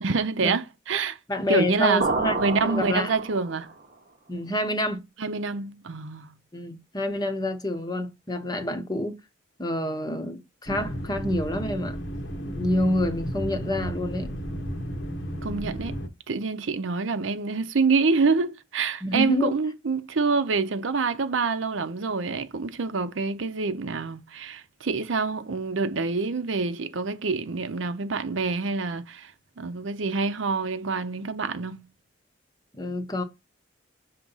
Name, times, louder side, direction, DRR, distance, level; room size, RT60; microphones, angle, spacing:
voice 1, 0.0-1.2 1.5-2.1 2.4-3.7 5.2-6.3 15.4-15.9 16.3-29.3 29.6-31.9, right 4 dB, 75° right, 0.6 m, -26 dB
voice 2, 1.3-3.1 4.3-5.1 6.5-9.2 9.6-12.0 12.4-14.3 19.0-19.5 32.7-33.2, left 1 dB, 20° left, 0.7 m, -28 dB
sound 1, 2.0-3.7, right 3 dB, 45° right, 0.8 m, -29 dB
sound 2, 10.7-16.1, equal, 65° left, 1.1 m, -33 dB
6.0 x 2.9 x 5.4 m
head